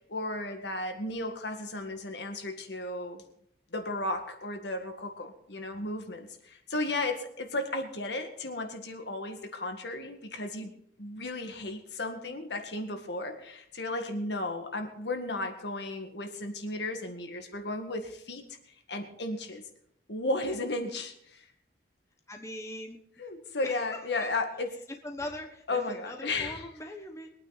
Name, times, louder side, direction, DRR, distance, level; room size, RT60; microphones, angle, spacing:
voice 1, 0.1-3.2 3.7-10.7 11.0-18.4 18.9-19.6 20.1-21.4 23.2-24.7 25.7-26.7, left 2 dB, 65° left, 5 dB, 1.9 m, -34 dB
voice 2, 22.3-23.0 23.6-24.3 25.0-27.4, left 1 dB, 15° left, 4 dB, 1.0 m, -41 dB
23.0 x 9.3 x 4.1 m, 0.73 s
head